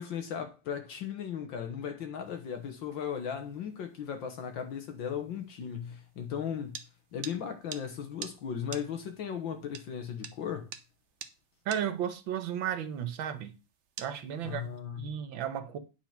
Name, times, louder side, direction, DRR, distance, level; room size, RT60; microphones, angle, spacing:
voice 1, 0.0-6.8 7.1-10.7 14.4-15.1, left 8 dB, 75° left, 1.9 m, -37 dB
sound 1, 2.2-14.8, right 7 dB, 55° right, 0.8 m, -50 dB
voice 2, 11.6-13.5 14.0-14.6 15.0-15.8, right 9 dB, 80° right, 1.8 m, -34 dB
9.4 x 4.9 x 5.9 m
omnidirectional pair, 2.1 m